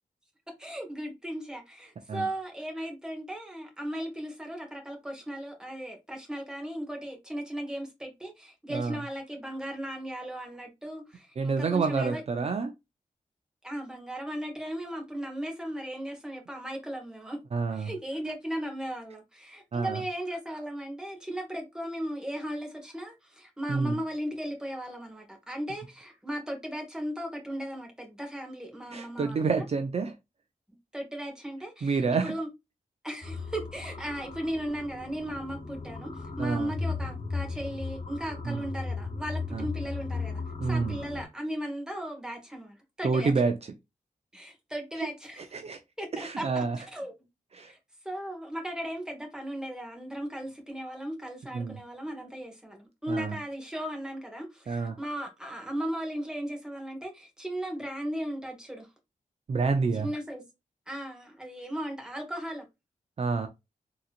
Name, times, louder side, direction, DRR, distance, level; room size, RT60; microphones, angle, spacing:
voice 1, 0.5-12.2 13.6-17.4 17.7-29.6 30.9-32.5 33.0-43.3 44.3-45.4 46.0-47.1 47.7-47.8 48.0-58.9 59.9-60.4 60.9-62.7, right 1 dB, 5° right, 1.4 m, -36 dB
voice 2, 8.7-9.0 11.4-12.7 17.5-17.9 19.7-20.0 23.7-24.0 28.9-30.1 31.8-32.3 36.4-36.7 38.5-38.6 39.5-39.7 40.6-41.0 43.0-43.5 45.5-45.8 46.1-46.8 47.5-47.7 51.5-51.8 53.1-53.3 54.7-55.0 59.5-60.1 63.2-63.5, right 4 dB, 45° right, 0.5 m, -28 dB
sound 1, 33.2-41.2, left 4 dB, 45° left, 1.1 m, -36 dB
3.8 x 2.9 x 2.4 m
wide cardioid pair, 110°, 14 cm